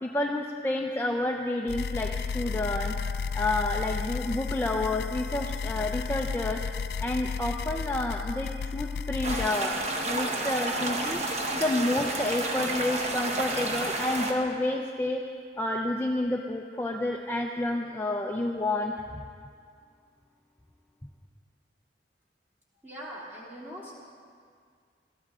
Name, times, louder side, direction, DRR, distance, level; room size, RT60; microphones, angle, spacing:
voice 1, 0.0-2.9 3.3-6.6 7.0-9.7 10.1-11.2 11.5-15.2 15.6-18.9, left 1 dB, 15° left, 1 dB, 0.6 m, -29 dB
sound 1, 1.7-9.5, left 5 dB, 65° left, 0.3 m, -33 dB
sound 2, 9.2-14.3, right 2 dB, 40° right, 1.2 m, -31 dB
voice 2, 22.8-23.9, equal, 10° right, -6 dB, 2.8 m, -41 dB
20.0 x 14.0 x 3.7 m, 2.1 s
head